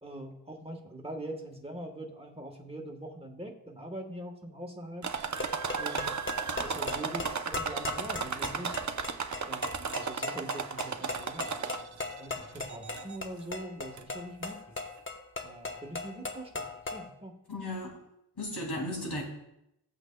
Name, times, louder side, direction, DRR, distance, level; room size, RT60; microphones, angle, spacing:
voice 1, 0.0-5.1 5.8-6.1 6.6-8.8 9.5-14.8 15.4-17.4 18.5-18.9, right 1 dB, 15° right, 1.2 m, -43 dB
sound 1, 5.0-12.1 12.5-13.2 14.0-14.1 14.5-14.6, right 5 dB, 45° right, 0.6 m, -35 dB
sound 2, 5.2-17.1, left 2 dB, 30° left, 0.9 m, -38 dB
voice 2, 17.5-18.0 18.4-19.2, left 1 dB, 70° left, 2.5 m, -35 dB
15.5 x 8.0 x 2.2 m
wide cardioid pair, 70°, 41 cm